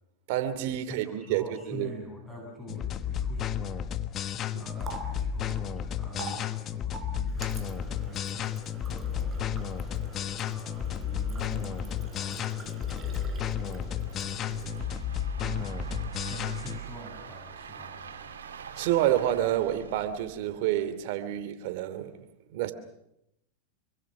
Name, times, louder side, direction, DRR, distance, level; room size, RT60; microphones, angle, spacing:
voice 1, 0.3-1.9 4.5-4.6 10.7-10.8 18.8-22.7, right 12 dB, 60° right, 2.8 m, -29 dB
voice 2, 0.9-18.4, right 1 dB, 5° left, 7.2 m, -47 dB
sound 1, 2.7-16.8, left 9 dB, 35° left, 1.3 m, -33 dB
Water tap faucet, 4.3-15.1, right 4 dB, 25° right, 5.0 m, -45 dB
sound 2, 5.9-6.0 6.7-21.1, right 8 dB, 90° right, 3.6 m, -46 dB
26.5 x 24.0 x 6.2 m
hypercardioid pair, 110°, 0 cm